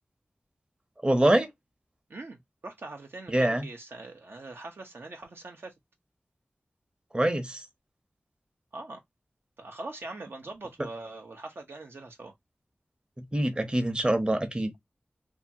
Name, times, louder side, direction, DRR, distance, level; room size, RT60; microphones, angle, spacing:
voice 1, 1.0-1.5 3.3-3.7 7.1-7.6 13.2-14.7, right 1 dB, 25° right, 0.7 m, -25 dB
voice 2, 2.1-5.7 8.7-9.0 9.6-12.3, right 2 dB, 75° right, 0.6 m, -42 dB
2.7 x 2.3 x 2.6 m
wide cardioid pair, 55°, 4 cm